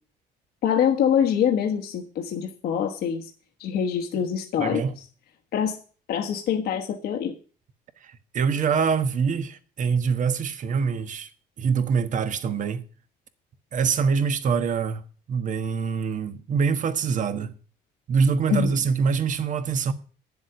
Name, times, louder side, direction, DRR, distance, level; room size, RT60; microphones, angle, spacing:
voice 1, 0.6-3.3 3.6-4.8 5.5-5.8 6.1-7.3 18.5-18.7, left 8 dB, 70° left, 1.3 m, -24 dB
voice 2, 4.6-4.9 8.0-11.3 11.6-12.8 13.7-15.0 15.3-17.5 18.1-19.9, right 6 dB, 50° right, 1.3 m, -24 dB
10.0 x 7.3 x 7.9 m
cardioid pair, 110°, 17 cm